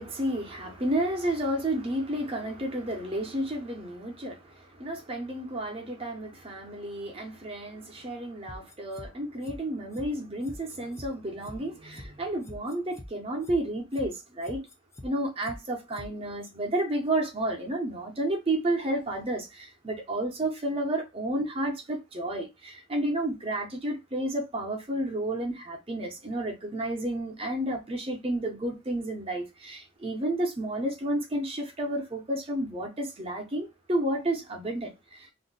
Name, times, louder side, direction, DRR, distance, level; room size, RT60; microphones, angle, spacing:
voice 1, 0.0-14.7 15.0-35.3, right 1 dB, 30° right, 0.7 m, -31 dB
sound 1, 8.5-9.1 9.4-9.6 9.9-10.1 10.4-11.1 11.4-11.6 11.9-12.1 12.4-13.1 13.4-13.6 13.9-14.1 14.4-15.1 15.4-15.6 15.9-16.1 16.4-16.5, left 1 dB, 15° left, 0.4 m, -43 dB
2.5 x 2.1 x 3.8 m
head